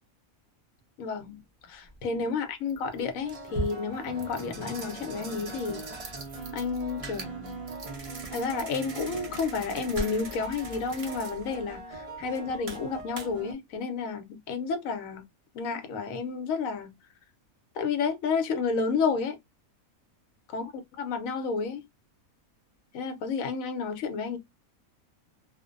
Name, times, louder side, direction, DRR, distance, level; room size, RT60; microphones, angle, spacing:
voice 1, 1.0-1.4 1.7-5.8 6.5-7.6 8.3-15.2 15.5-16.9 17.7-19.4 20.5-20.7 21.0-21.8 22.9-24.4, left 5 dB, 70° left, 1.0 m, -31 dB
sound 1, 1.9-2.0 2.7-13.5, right 2 dB, 65° right, 0.3 m, -39 dB
2.5 x 2.1 x 2.4 m
omnidirectional pair, 1.5 m